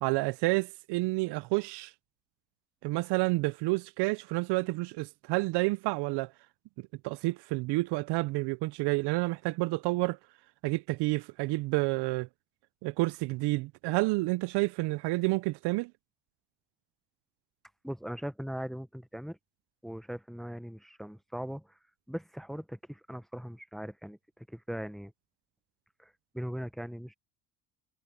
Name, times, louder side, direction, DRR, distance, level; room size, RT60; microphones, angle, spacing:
voice 1, 0.0-1.9 2.8-6.3 7.0-10.2 10.6-12.3 12.8-15.9, right 22 dB, 65° right, 0.5 m, -29 dB
voice 2, 17.8-19.4 19.8-21.8 22.1-25.1 26.0-27.1, equal, ahead, 0.8 m, -40 dB
cardioid pair, 115°, 45 cm